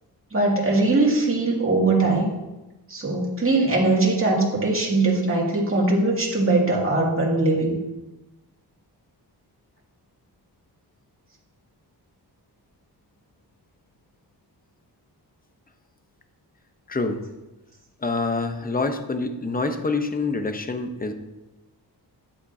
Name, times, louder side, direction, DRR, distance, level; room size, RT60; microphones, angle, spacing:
voice 1, 0.3-2.3 2.9-7.8, right 2 dB, 30° right, -3 dB, 2.3 m, -21 dB
voice 2, 18.0-21.1, left 3 dB, 20° left, 7 dB, 0.8 m, -26 dB
10.0 x 8.0 x 2.7 m, 1.0 s
wide cardioid pair, 90°, 41 cm